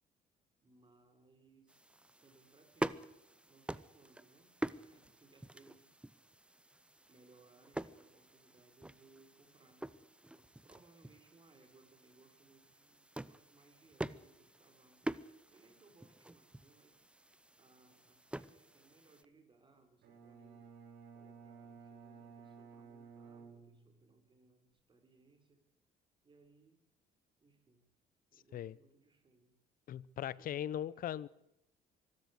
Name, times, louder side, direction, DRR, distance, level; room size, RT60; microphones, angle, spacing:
voice 1, 0.6-1.9 2.2-3.1 3.5-4.6 4.8-5.9 7.1-15.1 15.5-17.0 17.5-20.7 21.1-25.7 26.2-26.8 27.4-27.9 28.3-29.6 30.1-30.7 30.9-31.1, right 3 dB, 30° right, 6 dB, 4.7 m, -66 dB
sound 1, 1.7-19.2, right 1 dB, 5° right, 0.8 m, -46 dB
Bowed string instrument, 20.0-24.2, right 5 dB, 75° right, 6.2 m, -55 dB
voice 2, 28.3-28.7 29.9-31.3, left 11 dB, 55° left, 21 dB, 0.8 m, -40 dB
24.0 x 13.0 x 8.2 m, 0.86 s
cardioid pair, 110°, 17 cm